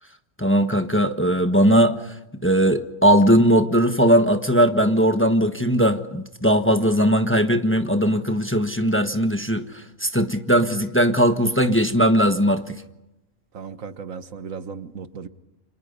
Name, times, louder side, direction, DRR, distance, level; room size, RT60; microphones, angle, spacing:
voice 1, 0.4-2.0 2.4-12.8, equal, 10° left, 1.2 m, -19 dB
voice 2, 13.5-15.3, right 6 dB, 85° right, 1.7 m, -36 dB
29.5 x 26.5 x 5.5 m
omnidirectional pair, 1.4 m